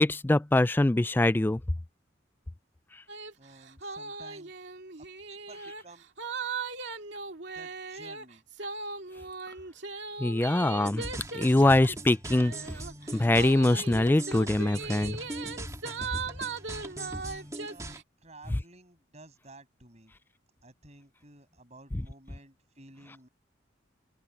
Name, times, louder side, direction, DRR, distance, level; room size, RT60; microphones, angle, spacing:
voice 1, 0.0-1.6 10.2-11.1 11.3-12.5 13.1-15.2, left 1 dB, 10° left, 0.3 m, -23 dB
sound 1, 3.1-3.3 3.6-18.0, right 4 dB, 65° right, 2.3 m, -39 dB
voice 2, 3.4-4.5 5.0-6.1 7.5-8.4 17.6-20.1 20.6-23.3, right 2 dB, 35° right, 8.0 m, -53 dB
sound 2, 10.8-18.0, right 1 dB, 15° right, 2.7 m, -41 dB
head